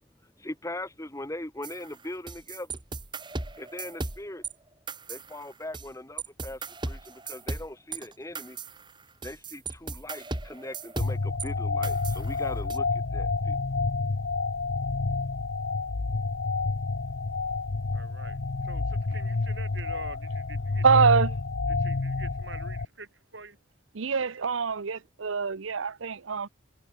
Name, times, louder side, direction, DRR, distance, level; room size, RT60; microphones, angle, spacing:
voice 1, 0.2-2.7 3.6-4.4 5.1-8.6 9.2-13.6, left 1 dB, 15° left, 1.4 m, -40 dB
sound 1, 1.6-4.5 4.9-5.9 6.2-11.5 11.8-12.8, right 3 dB, 25° right, 2.1 m, -37 dB
sound 2, 11.0-22.9, left 3 dB, 60° left, 0.7 m, -29 dB
voice 2, 17.9-21.1 21.8-23.6, right 4 dB, 65° right, 7.7 m, -46 dB
voice 3, 20.8-21.3 23.9-26.5, right 5 dB, 85° right, 0.8 m, -24 dB
head